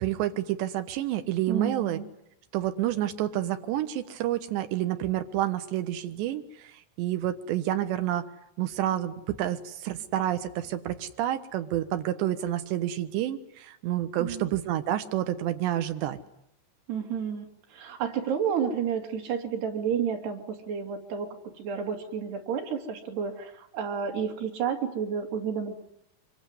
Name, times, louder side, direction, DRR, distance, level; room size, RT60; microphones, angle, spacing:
voice 1, 0.0-2.0 2.5-8.3 8.6-16.2, right 12 dB, 90° right, 9 dB, 3.6 m, -29 dB
voice 2, 1.5-2.1 14.2-14.5 16.9-21.3 21.6-25.7, right 7 dB, 70° right, 3 dB, 4.7 m, -31 dB
25.5 x 24.0 x 9.7 m, 0.75 s
omnidirectional pair, 4.9 m